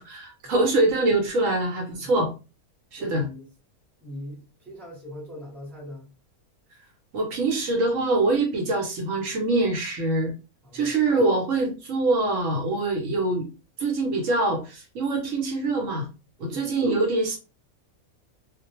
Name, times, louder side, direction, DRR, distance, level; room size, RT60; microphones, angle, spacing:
voice 1, 0.0-2.3 2.9-3.3 7.1-10.3 10.7-13.5 13.8-16.1 16.4-17.4, right 2 dB, 70° right, 1.0 m, -24 dB
voice 2, 3.0-3.5 4.0-6.1 10.6-11.0 16.4-16.7, left 1 dB, ahead, 0.8 m, -41 dB
2.4 x 2.1 x 2.9 m
omnidirectional pair, 1.5 m